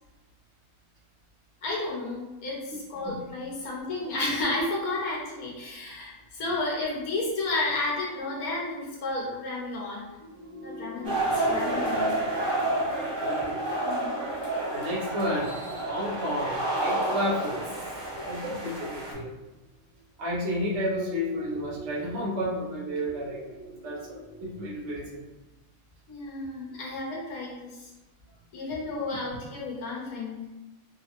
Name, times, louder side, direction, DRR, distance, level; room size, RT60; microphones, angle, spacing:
voice 1, 1.6-10.1 10.6-12.2 13.8-14.1 18.2-18.4 26.1-27.9 28.5-30.5, left 2 dB, 85° left, -3 dB, 1.2 m, -32 dB
sound 1, 10.2-19.4 20.4-24.9, equal, 50° right, 0.9 m, -43 dB
sound 2, 11.0-19.1, right 2 dB, 25° right, 0.6 m, -30 dB
voice 2, 12.8-13.6 14.7-17.6 18.2-19.3 20.2-23.6 23.8-25.2, equal, 70° right, -4 dB, 1.0 m, -32 dB
3.4 x 2.0 x 2.8 m, 1.0 s
omnidirectional pair, 1.5 m